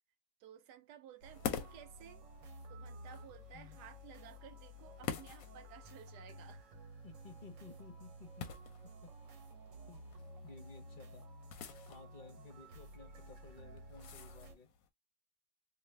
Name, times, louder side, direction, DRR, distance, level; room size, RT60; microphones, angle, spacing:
voice 1, 0.4-2.2 2.7-6.7, right 9 dB, 80° right, 1.2 m, -56 dB
sound 1, 1.2-14.6, right 1 dB, 60° right, 1.0 m, -53 dB
sound 2, 1.3-14.9, left 8 dB, 70° left, 0.9 m, -49 dB
voice 2, 7.0-8.5 9.0-9.4 9.9-10.0 10.4-11.2 11.9-14.7, left 5 dB, 45° left, 0.6 m, -56 dB
2.5 x 2.5 x 3.2 m
omnidirectional pair, 1.7 m